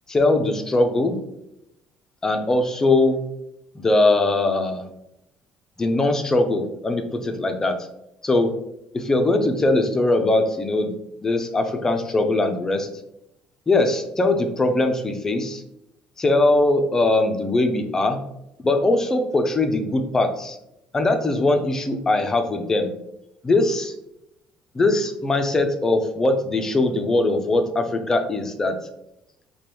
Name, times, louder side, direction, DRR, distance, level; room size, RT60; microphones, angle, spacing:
voice 1, 0.1-1.2 2.2-3.2 3.7-4.9 5.8-7.8 8.2-8.5 8.9-10.9 11.2-12.9 13.7-15.6 16.2-18.2 18.6-20.6 20.9-22.9 23.4-23.9 24.7-28.8, left 2 dB, 20° left, 6 dB, 0.5 m, -21 dB
4.9 x 2.2 x 3.0 m, 0.82 s
cardioid pair, 130°, 3 cm